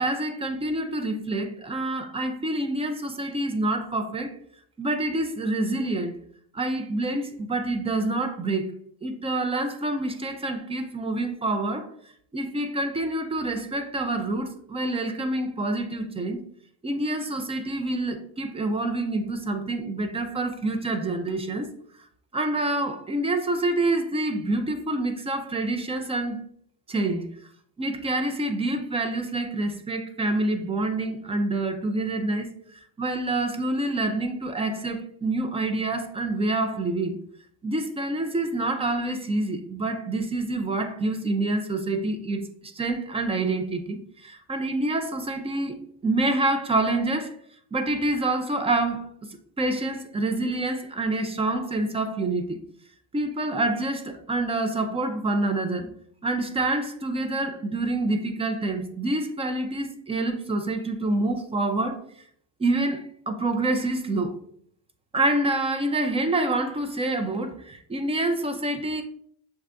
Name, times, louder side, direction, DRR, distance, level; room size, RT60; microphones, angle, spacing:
voice 1, 0.0-4.3 4.8-6.2 6.5-8.7 9.0-11.9 12.3-16.4 16.8-21.7 22.3-26.4 26.9-27.3 27.8-37.2 37.6-44.0 44.2-47.4 47.7-49.1 49.6-52.6 53.1-55.9 56.2-62.0 62.6-64.4 65.1-69.0, right 2 dB, 15° right, 0.4 m, -27 dB
6.4 x 2.4 x 3.3 m
cardioid pair, 125°, 40 cm